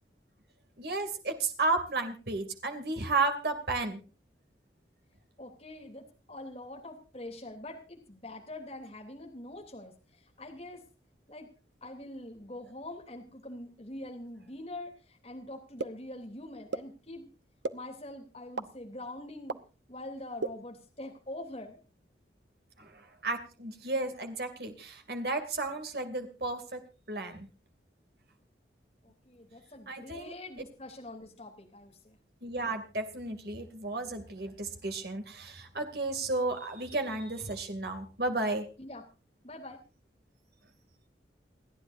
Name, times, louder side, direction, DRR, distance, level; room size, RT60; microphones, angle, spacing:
voice 1, 0.8-4.0 22.8-26.8 27.1-27.5 29.9-30.3 32.4-38.7, right 3 dB, 60° right, 6 dB, 2.6 m, -33 dB
voice 2, 5.4-10.8 11.3-11.5 11.8-17.3 17.7-19.6 19.9-21.8 29.0-32.2 38.8-39.0 39.4-39.8, left 1 dB, 35° left, 2 dB, 3.1 m, -44 dB
sound 1, 15.8-15.9 16.7-16.8 17.6-17.7 18.6-18.7 19.5-19.6 20.4-20.5, right 3 dB, 90° right, 0.9 m, -31 dB
29.0 x 10.0 x 2.6 m, 0.34 s
head